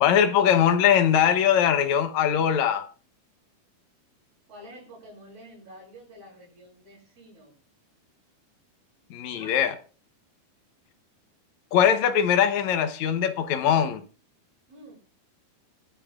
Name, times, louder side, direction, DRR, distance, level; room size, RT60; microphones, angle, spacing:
voice 1, 0.0-2.9 9.1-9.7 11.7-14.0, left 9 dB, 70° left, 1.9 m, -21 dB
voice 2, 4.5-7.5 9.3-9.8 14.7-15.0, equal, 85° right, 8.3 m, -48 dB
24.0 x 12.5 x 2.5 m
omnidirectional pair, 4.3 m